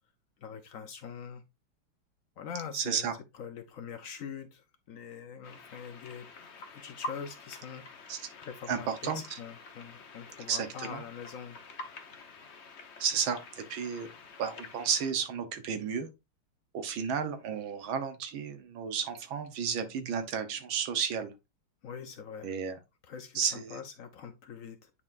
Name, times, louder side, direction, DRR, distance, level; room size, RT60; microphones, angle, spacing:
voice 1, 0.4-1.4 2.4-3.1 3.3-11.6 21.8-22.5 23.0-24.9, left 7 dB, 85° left, 0.7 m, -44 dB
voice 2, 2.7-3.1 8.1-8.2 8.7-9.2 10.5-11.0 13.0-14.1 14.4-16.1 16.7-21.3 22.4-22.8 23.3-23.8, right 7 dB, 70° right, 1.6 m, -32 dB
sound 1, 5.4-15.1, left 3 dB, 50° left, 0.8 m, -47 dB
9.7 x 4.2 x 2.5 m
omnidirectional pair, 2.4 m